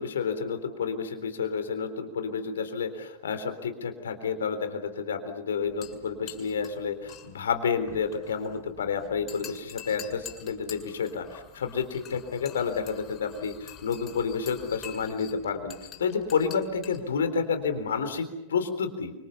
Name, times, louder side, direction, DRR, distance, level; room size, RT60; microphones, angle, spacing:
voice 1, 0.0-15.7 16.0-19.1, left 6 dB, 65° left, 9 dB, 3.7 m, -30 dB
sound 1, 5.6-18.0, left 9 dB, 30° left, 6.8 m, -47 dB
29.5 x 25.5 x 7.0 m, 0.94 s
figure-of-eight pair, 90°, 0 cm